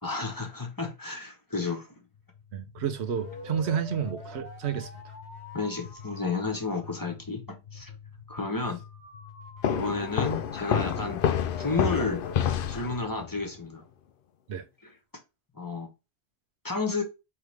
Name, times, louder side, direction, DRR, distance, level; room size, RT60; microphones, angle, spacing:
voice 1, 0.0-1.9 5.5-7.9 8.3-8.8 9.7-11.2 11.5-12.2 12.7-13.8 14.8-14.9 15.6-15.9 16.6-17.0, left 3 dB, 20° left, 1.1 m, -32 dB
sound 1, 2.1-14.0, left 4 dB, 90° left, 1.5 m, -45 dB
voice 2, 2.5-4.9 14.5-14.6, right 8 dB, 85° right, 1.0 m, -30 dB
sound 2, 9.6-13.3, left 8 dB, 60° left, 0.7 m, -28 dB
4.8 x 3.4 x 3.2 m
omnidirectional pair, 1.1 m